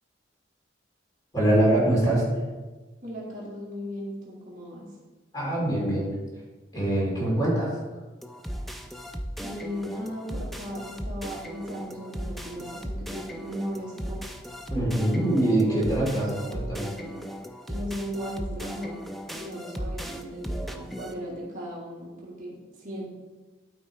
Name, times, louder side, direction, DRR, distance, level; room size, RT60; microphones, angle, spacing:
voice 1, 1.3-2.2 5.3-6.1 6.7-7.7 14.7-16.8, right 1 dB, 20° left, -5 dB, 2.8 m, -23 dB
voice 2, 3.0-4.9 9.4-14.2 15.7-15.9 16.4-17.1 17.7-19.0 19.3-23.1, equal, 40° right, -5 dB, 2.0 m, -37 dB
sound 1, 8.2-21.1, equal, ahead, 0.4 m, -36 dB
12.0 x 4.1 x 4.4 m, 1.2 s
head